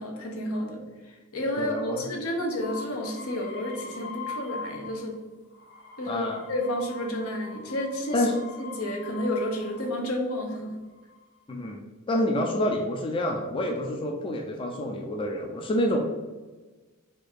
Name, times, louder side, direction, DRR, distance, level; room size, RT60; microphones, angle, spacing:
voice 1, 0.0-5.2 6.0-8.3 8.6-10.8, left 1 dB, 80° left, 1 dB, 1.0 m, -31 dB
voice 2, 1.6-2.0 6.1-6.4 8.1-8.4 11.5-11.8 12.1-16.0, left 1 dB, 25° left, 2 dB, 0.4 m, -27 dB
sound 1, 2.6-5.2 5.5-10.1 10.8-11.4, left 4 dB, 50° left, 0.7 m, -42 dB
4.4 x 2.6 x 4.5 m, 1.3 s
head